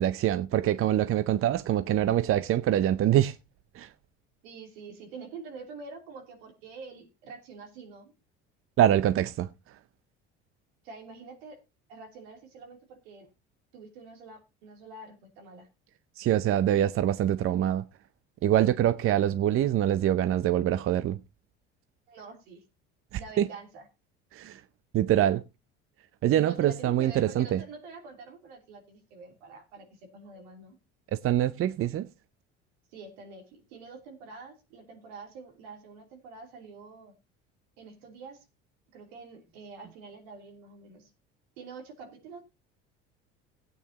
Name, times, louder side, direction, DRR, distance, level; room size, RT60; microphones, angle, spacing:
voice 1, 0.0-3.4 3.7-3.9 8.8-9.5 16.2-17.9 18.4-21.2 23.1-23.5 24.3-24.6 24.9-25.4 26.2-27.6 31.1-32.1, right 11 dB, 45° right, 0.6 m, -24 dB
voice 2, 4.4-8.1 10.8-11.6 11.9-13.3 13.7-15.7 22.1-22.6 23.2-23.9 26.4-30.8 32.9-37.1 37.8-38.4 38.9-41.1 41.6-42.4, right 4 dB, 80° right, 3.2 m, -46 dB
17.0 x 9.0 x 2.8 m
hypercardioid pair, 75°, 31 cm